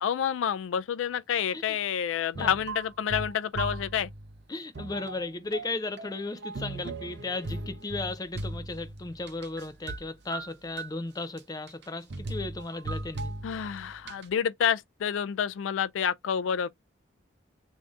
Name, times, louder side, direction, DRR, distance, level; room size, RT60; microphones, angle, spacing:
voice 1, 0.0-4.1 13.4-16.7, left 8 dB, 80° left, 0.3 m, -29 dB
sound 1, 2.4-4.4 4.8-10.0 10.3-10.9 11.4-11.5 11.7-11.8 12.1-14.3, right 2 dB, 60° right, 0.7 m, -38 dB
voice 2, 4.5-13.3, left 2 dB, 20° left, 0.5 m, -35 dB
3.3 x 2.7 x 3.6 m
head